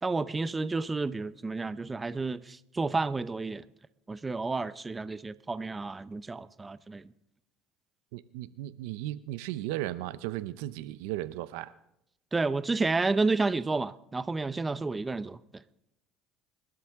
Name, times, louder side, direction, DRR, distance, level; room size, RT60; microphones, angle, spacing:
voice 1, 0.0-3.6 4.1-7.1 12.3-15.6, right 3 dB, 20° right, 0.6 m, -31 dB
voice 2, 8.1-11.7, right 15 dB, 85° right, 0.6 m, -36 dB
27.0 x 12.5 x 3.6 m
supercardioid pair, 100°, 0 cm